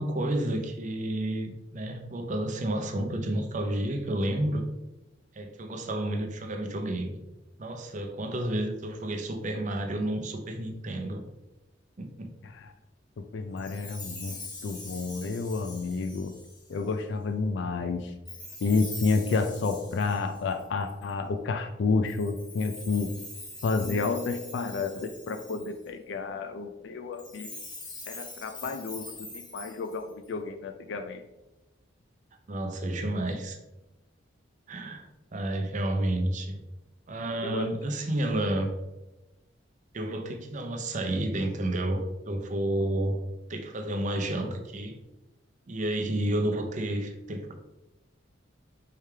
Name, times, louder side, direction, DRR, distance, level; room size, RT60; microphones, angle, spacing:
voice 1, 0.0-4.6 5.3-7.2 7.6-11.2 12.0-12.3 32.5-33.6 34.7-36.6 37.1-38.7 39.9-43.2 43.5-45.0 45.7-47.5, right 1 dB, 40° right, 5 dB, 0.6 m, -30 dB
voice 2, 13.2-16.3 16.7-18.1 18.6-23.1 23.6-27.5 28.1-31.2 37.4-37.7, left 4 dB, 65° left, 7 dB, 0.3 m, -30 dB
Chime, 13.6-16.9 18.3-21.1 22.0-25.9 27.1-30.3, left 2 dB, 25° left, 1.1 m, -43 dB
4.7 x 3.3 x 3.3 m, 0.97 s
head